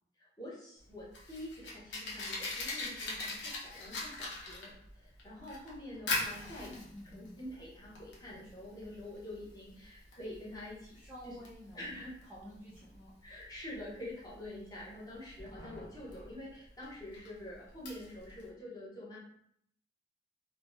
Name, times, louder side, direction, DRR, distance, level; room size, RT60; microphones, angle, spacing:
voice 1, 0.2-6.7 7.1-11.0 11.2-11.3 11.7-12.2 13.2-19.2, left 1 dB, 20° left, -6 dB, 0.8 m, -46 dB
Fire, 0.8-18.5, left 2 dB, 80° left, 0.7 m, -42 dB
voice 2, 6.6-7.4 10.9-12.0 12.3-13.1, equal, 10° right, -7 dB, 0.4 m, -50 dB
3.3 x 2.0 x 2.5 m, 0.69 s
head